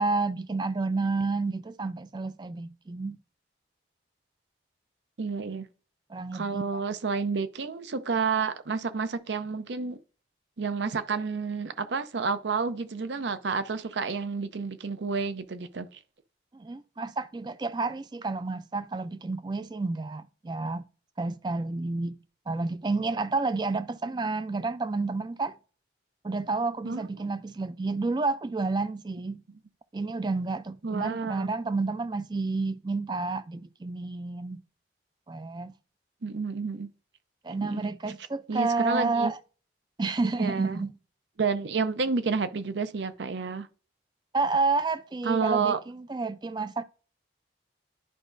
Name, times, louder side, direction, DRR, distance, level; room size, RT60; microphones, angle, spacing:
voice 1, 0.0-3.2 6.1-6.6 16.5-20.8 21.2-22.2 22.5-25.6 26.2-29.4 29.9-34.6 35.3-35.7 37.4-39.4 40.0-40.9 44.3-46.8, right 3 dB, 25° right, 0.3 m, -30 dB
voice 2, 5.2-5.7 6.3-10.0 10.6-16.0 26.8-27.3 30.8-31.5 36.2-36.9 37.6-37.8 38.5-39.3 40.4-40.8 41.4-43.7 45.2-45.8, right 5 dB, 75° right, 0.6 m, -30 dB
11.0 x 4.9 x 2.6 m
head